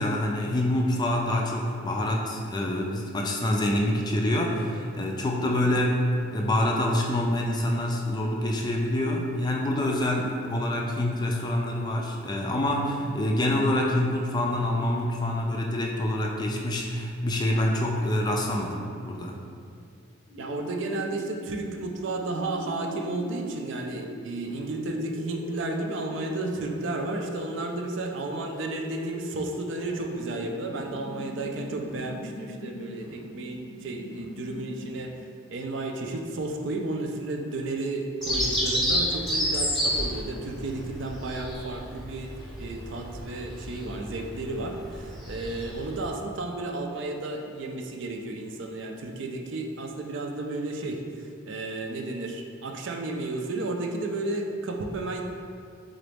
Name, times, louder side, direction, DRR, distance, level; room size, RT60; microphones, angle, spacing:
voice 1, 0.0-6.0 6.3-19.4, left 1 dB, 20° left, 0 dB, 0.3 m, -26 dB
sound 1, 20.3-35.1, equal, 65° left, 0.7 m, -42 dB
voice 2, 20.4-35.1 35.5-55.2, right 2 dB, 60° right, 3 dB, 0.4 m, -33 dB
Bird vocalization bird call bird song, 38.2-46.1, equal, ahead, 0.7 m, -30 dB
3.9 x 3.9 x 3.4 m, 2.2 s
head